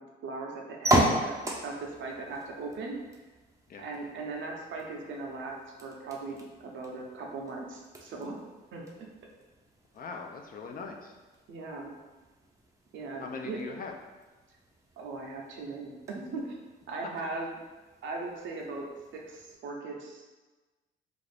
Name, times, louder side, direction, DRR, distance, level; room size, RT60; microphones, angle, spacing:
voice 1, 0.0-1.4 1.6-3.0 3.8-8.4 8.7-9.1 11.5-12.0 12.9-13.6 15.0-16.6 16.9-17.5 18.0-18.9 19.1-20.2, right 3 dB, 70° right, 0 dB, 0.6 m, -39 dB
sound 1, 0.8-19.6, right 1 dB, 15° right, 0.5 m, -37 dB
voice 2, 9.9-11.2 13.2-14.0, left 4 dB, 45° left, 3 dB, 0.4 m, -40 dB
2.5 x 2.4 x 3.3 m, 1.2 s
cardioid pair, 90°, 20 cm